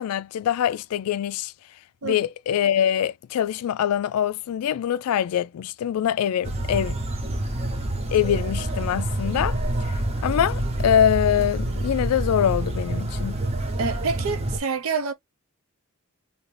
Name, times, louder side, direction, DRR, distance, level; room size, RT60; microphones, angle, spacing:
voice 1, 0.0-1.5 2.0-7.0 8.1-9.6 9.9-13.4, left 9 dB, 90° left, 0.3 m, -24 dB
sound 1, 6.4-14.6, right 1 dB, 30° right, 0.7 m, -27 dB
voice 2, 13.8-15.1, right 5 dB, 70° right, 0.7 m, -27 dB
2.8 x 2.5 x 3.1 m
head